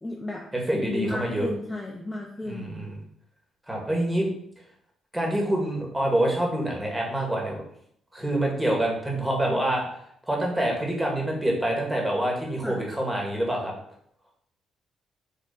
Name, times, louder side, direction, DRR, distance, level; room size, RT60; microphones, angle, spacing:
voice 1, 0.0-0.5 0.7-2.8 3.7-3.9 12.6-12.8, left 2 dB, 15° left, 0 dB, 0.7 m, -33 dB
voice 2, 0.5-1.5 2.5-3.0 3.7-4.3 5.1-7.6 8.1-9.8 10.3-13.7, right 1 dB, 10° right, -1 dB, 2.0 m, -26 dB
5.5 x 3.3 x 5.2 m, 0.69 s
cardioid pair, 90°, 0 cm